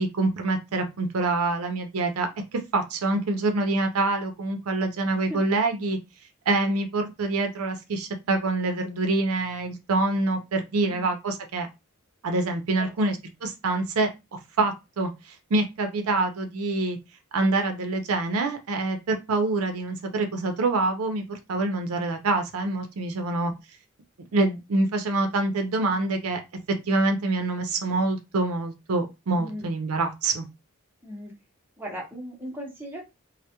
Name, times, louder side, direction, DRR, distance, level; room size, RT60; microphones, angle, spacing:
voice 1, 0.0-6.0 6.5-11.7 12.2-15.1 15.5-17.0 17.3-23.5 24.3-26.4 26.9-30.5, right 2 dB, 85° right, 5 dB, 0.5 m, -26 dB
voice 2, 12.8-13.1 16.1-16.2 29.3-29.7 31.0-31.3 31.8-33.0, equal, 10° right, -2 dB, 0.7 m, -38 dB
2.2 x 2.1 x 2.8 m, 0.24 s
head